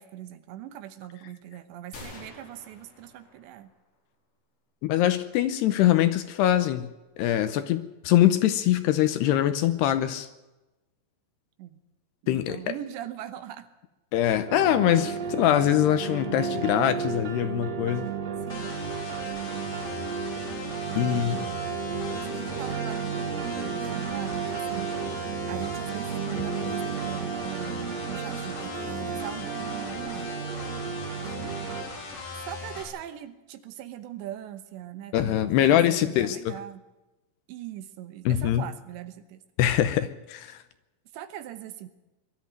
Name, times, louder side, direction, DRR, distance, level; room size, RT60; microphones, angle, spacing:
voice 1, 0.0-3.7 11.6-11.8 12.2-13.7 18.5-18.8 19.4-19.6 20.9-21.6 22.2-24.9 25.5-30.4 31.5-31.6 32.5-36.8 37.5-39.4 41.1-41.9, right 12 dB, 75° right, 11 dB, 3.2 m, -41 dB
sound 1, 1.9-3.8, left 2 dB, 35° left, 5.1 m, -47 dB
voice 2, 4.8-10.3 12.3-12.8 14.1-18.1 21.0-21.5 35.1-36.5 38.3-38.6 39.6-40.6, left 12 dB, 75° left, 11 dB, 2.6 m, -23 dB
sound 2, 14.5-31.8, right 6 dB, 55° right, 2.0 m, -33 dB
sound 3, 18.5-32.8, left 4 dB, 55° left, 6.4 m, -39 dB
22.0 x 13.0 x 9.3 m, 1.0 s
omnidirectional pair, 5.3 m